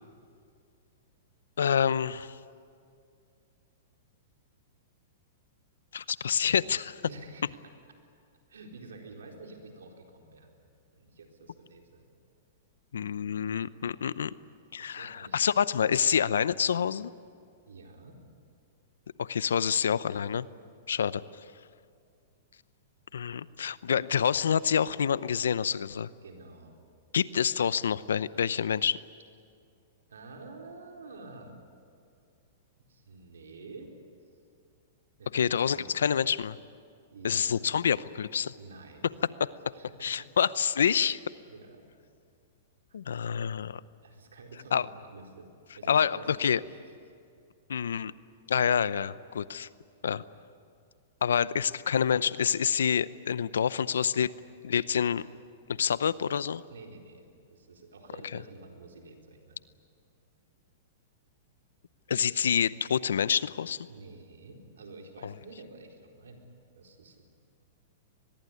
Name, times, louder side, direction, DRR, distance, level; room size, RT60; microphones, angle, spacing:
voice 1, 1.6-2.4 5.9-7.0 12.9-14.3 14.7-17.1 19.2-20.5 20.9-21.2 23.1-26.1 27.1-29.0 35.3-36.6 37.2-38.5 40.0-41.2 42.9-43.8 44.7-44.9 45.9-46.6 47.7-48.1 48.5-49.7 50.0-50.2 51.2-54.3 54.6-55.3 55.8-56.6 58.3-58.4 62.1-63.9 65.2-65.3, left 7 dB, 85° left, 18 dB, 0.7 m, -27 dB
voice 2, 7.0-7.5 8.5-10.5 10.9-12.0 14.8-15.4 17.7-18.2 20.9-21.0 26.2-26.7 30.1-31.6 32.8-33.9 35.2-36.1 37.1-37.7 38.6-39.1 39.8-40.3 41.5-41.8 43.4-43.6 44.0-45.5 45.8-46.6 56.7-57.2 57.5-59.6 63.9-66.4 66.8-67.2, right 3 dB, 90° right, 2 dB, 4.3 m, -49 dB
24.0 x 21.0 x 9.8 m, 2.4 s
hypercardioid pair, 125°, 0 cm